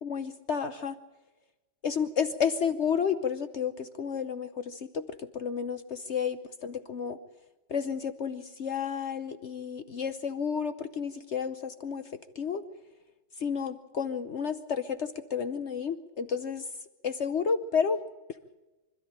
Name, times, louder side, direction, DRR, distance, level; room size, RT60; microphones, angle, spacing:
voice 1, 0.0-0.9 1.8-7.2 7.7-12.0 12.4-12.6 13.4-16.6 17.0-18.0, left 6 dB, 65° left, 11 dB, 0.6 m, -31 dB
25.0 x 13.5 x 8.7 m, 1.1 s
omnidirectional pair, 2.2 m